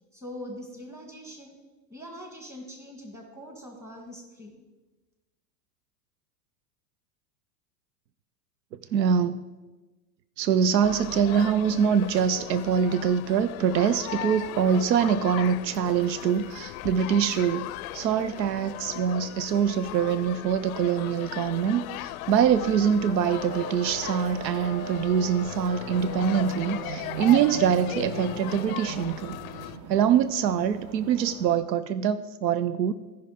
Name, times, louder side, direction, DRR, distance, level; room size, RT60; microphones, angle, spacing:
voice 1, 0.1-1.6 1.9-4.6, equal, 5° right, 2 dB, 1.7 m, -42 dB
voice 2, 8.9-9.4 10.4-29.3 29.9-32.9, right 8 dB, 90° right, 14 dB, 0.6 m, -24 dB
sound 1, 10.8-29.8, left 16 dB, 60° left, 0.5 m, -38 dB
sound 2, 23.1-31.6, right 6 dB, 35° right, 1.1 m, -39 dB
14.0 x 5.7 x 5.0 m, 1.2 s
hypercardioid pair, 120°, 49 cm